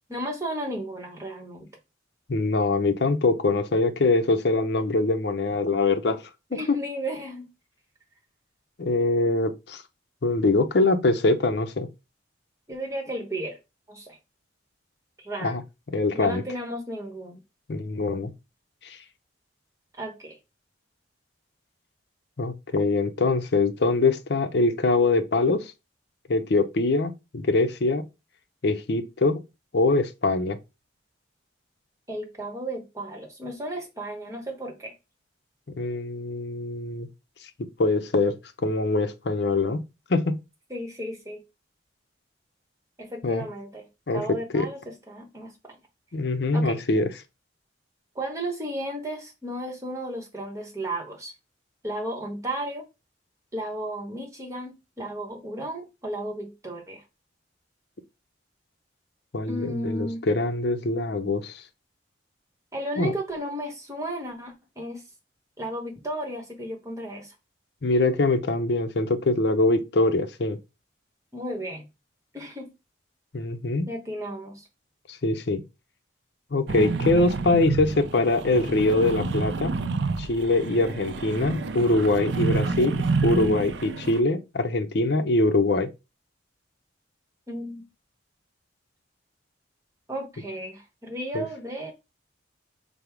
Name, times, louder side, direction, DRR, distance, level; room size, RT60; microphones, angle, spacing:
voice 1, 0.1-1.7 6.5-7.5 12.7-13.6 13.9-14.2 15.2-15.6 16.1-17.4 19.9-20.4 32.1-34.9 40.7-41.4 43.0-43.9 44.1-45.8 46.5-46.8 48.1-51.3 51.8-52.8 53.5-57.0 59.5-60.3 62.7-65.0 65.6-67.3 71.3-71.8 72.3-72.7 73.9-74.7 87.5-87.9 90.1-91.9, right 1 dB, 15° right, 1.0 m, -34 dB
voice 2, 2.3-6.2 6.5-6.8 8.8-9.8 10.2-11.9 15.4-15.6 15.9-16.4 17.7-18.3 18.8-19.0 22.4-25.7 26.3-28.0 28.6-29.4 29.7-30.6 35.8-37.1 37.8-38.4 38.6-39.8 40.1-40.4 43.2-43.4 44.1-44.2 44.5-44.7 46.1-47.1 59.3-61.6 63.0-63.1 67.8-70.6 73.3-73.9 75.2-75.6 76.5-79.7 80.2-85.9 91.3-91.4, left 2 dB, 60° left, 0.6 m, -23 dB
sound 1, 76.7-84.2, right 4 dB, 70° right, 0.4 m, -29 dB
5.2 x 2.0 x 4.5 m
head